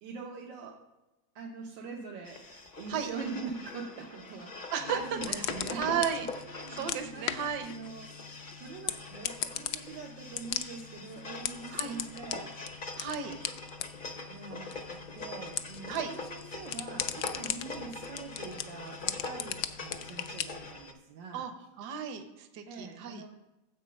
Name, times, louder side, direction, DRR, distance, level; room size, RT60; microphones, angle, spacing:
voice 1, 0.0-0.8 1.3-2.4 2.8-6.3 6.5-8.1 8.6-12.5 14.3-21.4 22.7-23.3, right 4 dB, 85° right, -1 dB, 1.7 m, -43 dB
sound 1, 2.2-20.9, left 3 dB, 45° left, 0.7 m, -43 dB
voice 2, 4.7-6.3 6.7-7.7 11.7-12.0 13.0-13.3 15.9-16.1 21.3-21.5 21.8-23.2, right 7 dB, 65° right, 7 dB, 1.4 m, -34 dB
sound 2, 4.8-20.7, left 10 dB, 70° left, 1.0 m, -39 dB
9.7 x 7.5 x 5.2 m, 1.0 s
omnidirectional pair, 2.0 m